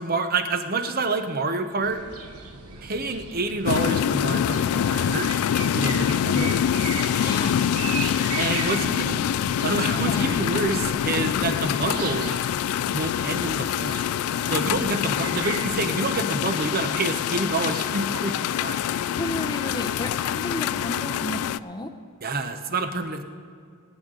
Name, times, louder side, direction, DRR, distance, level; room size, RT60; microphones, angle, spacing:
voice 1, 0.0-2.0 2.8-5.3 5.6-6.6 8.4-9.2 9.6-12.3 12.9-14.0 14.5-18.8 22.2-23.2, right 3 dB, 40° right, 8 dB, 0.8 m, -28 dB
sound 1, 1.8-15.7, right 5 dB, 90° right, 1.2 m, -38 dB
sound 2, 3.7-21.6, left 9 dB, 80° left, 0.3 m, -25 dB
voice 2, 7.1-7.6 8.7-9.0 9.9-10.4 10.7-10.8 19.1-21.9, left 1 dB, 20° left, 6 dB, 0.7 m, -33 dB
24.5 x 8.9 x 3.9 m, 2.2 s
head